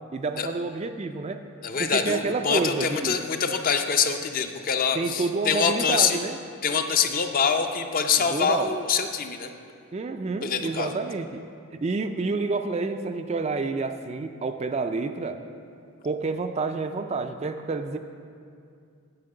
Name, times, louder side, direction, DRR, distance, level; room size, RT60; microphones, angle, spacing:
voice 1, 0.1-1.4 1.8-3.2 4.9-6.4 8.2-8.8 9.9-11.3 11.8-15.4 16.0-18.0, right 3 dB, 30° right, 7 dB, 0.3 m, -29 dB
voice 2, 1.6-6.2 6.6-9.5 10.4-10.9, left 6 dB, 40° left, 6 dB, 0.5 m, -25 dB
8.9 x 5.7 x 7.7 m, 2.4 s
head